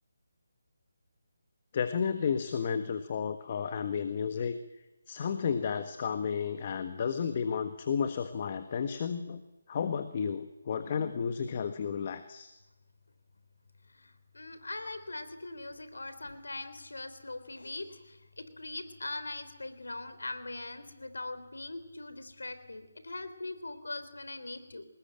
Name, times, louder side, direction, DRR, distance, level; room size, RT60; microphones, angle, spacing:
voice 1, 1.7-4.6 5.1-9.4 9.7-12.5, left 6 dB, 35° left, 9 dB, 1.5 m, -32 dB
voice 2, 13.9-24.9, left 2 dB, 85° left, 11 dB, 3.3 m, -41 dB
26.5 x 20.0 x 9.1 m, 1.0 s
figure-of-eight pair, 160°, 0 cm